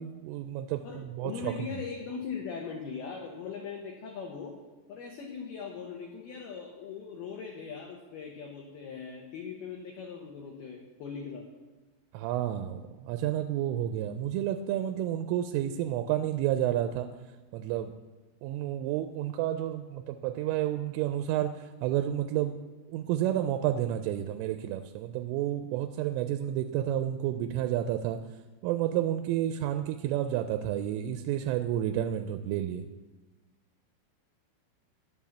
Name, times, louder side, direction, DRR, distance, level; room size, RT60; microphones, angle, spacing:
voice 1, 0.0-1.6 12.1-17.1 17.5-17.9 18.4-22.6 22.9-28.2 28.6-32.9, right 12 dB, 90° right, 8 dB, 3.1 m, -30 dB
voice 2, 0.8-4.5 4.9-11.5, left 6 dB, 70° left, 0 dB, 2.5 m, -40 dB
10.5 x 7.3 x 7.1 m, 1.2 s
omnidirectional pair, 5.6 m